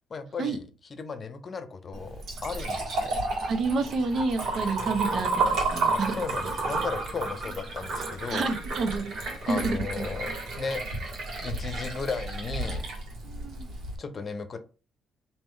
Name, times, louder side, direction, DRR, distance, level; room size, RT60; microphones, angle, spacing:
voice 1, 0.1-3.2 6.2-8.5 9.5-10.8 11.4-12.9 14.0-14.6, left 5 dB, 40° left, 9 dB, 0.7 m, -35 dB
Liquid, 1.9-13.9, right 3 dB, 75° right, 1.5 m, -31 dB
voice 2, 3.1-6.1 8.3-10.3 13.2-13.7, right 3 dB, 60° right, 7 dB, 0.8 m, -30 dB
3.5 x 2.8 x 4.4 m, 0.35 s
cardioid pair, 90°, 0 cm